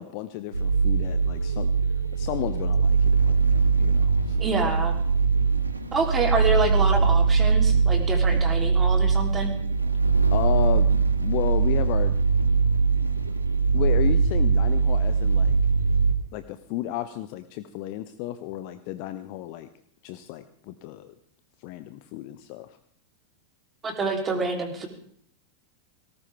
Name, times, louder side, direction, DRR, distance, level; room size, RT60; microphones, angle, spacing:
voice 1, 0.0-1.7 2.1-3.4 3.8-4.4 10.3-10.9 11.2-12.2 13.7-15.6 16.3-19.7 20.0-21.1 21.6-22.7, left 14 dB, 45° left, 12 dB, 0.8 m, -33 dB
sound 1, 0.5-16.1, right 5 dB, 80° right, 1.4 m, -21 dB
voice 2, 4.4-4.9 5.9-9.5 23.8-24.9, right 3 dB, 20° right, 3 dB, 3.3 m, -27 dB
18.5 x 18.0 x 3.5 m, 0.64 s
figure-of-eight pair, 90°, 0 cm